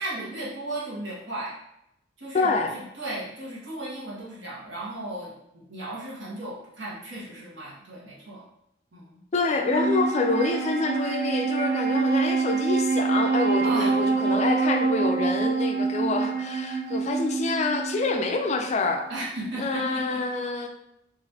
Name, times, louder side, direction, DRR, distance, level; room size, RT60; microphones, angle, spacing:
voice 1, 0.0-1.5 2.2-8.4 8.9-9.2 13.6-13.9 19.1-20.2, right 1 dB, 70° right, -7 dB, 1.2 m, -35 dB
voice 2, 2.3-2.7 9.3-19.0 19.6-20.7, left 3 dB, 35° left, 4 dB, 0.4 m, -27 dB
Wind instrument woodwind instrument, 9.5-19.0, right 4 dB, 50° right, 0.4 m, -26 dB
3.8 x 2.5 x 2.8 m, 0.80 s
head